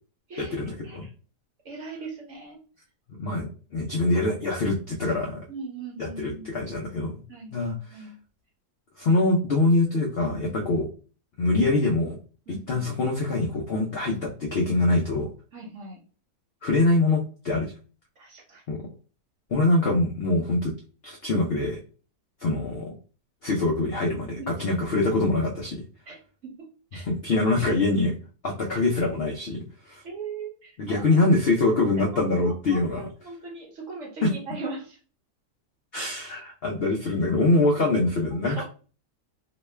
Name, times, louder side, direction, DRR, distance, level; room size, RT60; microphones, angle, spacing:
voice 1, 0.4-1.0 3.2-3.5 3.7-5.4 6.0-7.2 7.5-8.0 9.0-10.9 11.4-12.2 12.7-15.3 16.6-17.7 18.7-18.8 19.5-20.7 21.0-21.8 22.4-22.9 23.4-25.8 26.9-28.1 28.4-30.0 30.8-33.1 34.2-34.3 35.9-38.6, left 2 dB, 80° left, 0 dB, 0.5 m, -24 dB
voice 2, 1.6-2.6 5.5-6.5 7.3-8.1 12.5-12.9 15.5-16.0 18.2-18.6 24.4-24.5 26.1-26.2 26.4-26.5 26.9-27.1 30.0-31.2 32.1-35.0 38.4-38.6, right 4 dB, 55° right, 0 dB, 1.0 m, -39 dB
3.0 x 2.2 x 3.1 m, 0.37 s
omnidirectional pair, 1.8 m